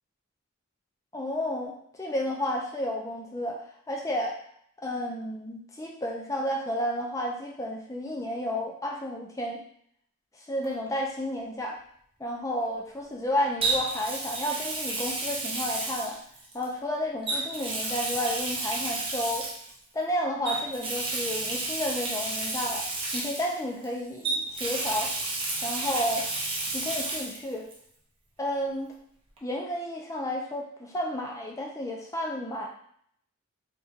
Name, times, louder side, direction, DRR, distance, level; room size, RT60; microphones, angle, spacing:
voice 1, 1.1-3.6 3.9-4.3 4.8-9.6 10.5-11.8 12.2-16.2 16.5-19.5 19.9-22.9 23.1-25.1 25.6-26.2 26.7-27.7 28.4-28.9 29.4-32.7, left 1 dB, 15° left, -1 dB, 0.5 m, -31 dB
Water tap faucet, 10.6-10.9 13.6-16.7 17.2-19.7 20.4-23.9 24.2-27.4 27.7-27.8 29.4-29.5, right 2 dB, 25° right, 0.7 m, -31 dB
3.8 x 2.7 x 2.4 m, 0.66 s
head